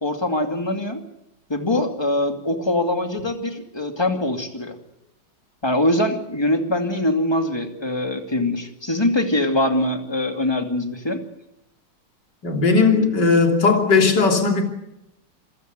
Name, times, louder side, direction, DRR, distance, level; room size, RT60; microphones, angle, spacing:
voice 1, 0.0-1.0 1.5-4.8 5.6-11.2, left 1 dB, 10° left, 2.4 m, -23 dB
voice 2, 12.4-14.6, left 4 dB, 55° left, 3.7 m, -17 dB
27.0 x 16.5 x 8.1 m
omnidirectional pair, 2.3 m